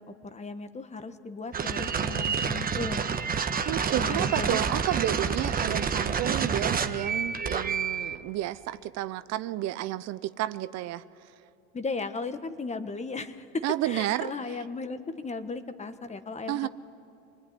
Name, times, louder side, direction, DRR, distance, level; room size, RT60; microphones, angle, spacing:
voice 1, 0.0-3.1 3.9-4.6 11.7-16.7, left 3 dB, 20° left, 10 dB, 1.4 m, -36 dB
sound 1, 1.5-8.2, right 6 dB, 30° right, 1.4 m, -28 dB
voice 2, 3.6-11.0 13.6-14.3 16.5-16.7, right 14 dB, 55° right, 14 dB, 0.8 m, -31 dB
26.0 x 20.0 x 9.8 m, 2.7 s
supercardioid pair, 95°, 31 cm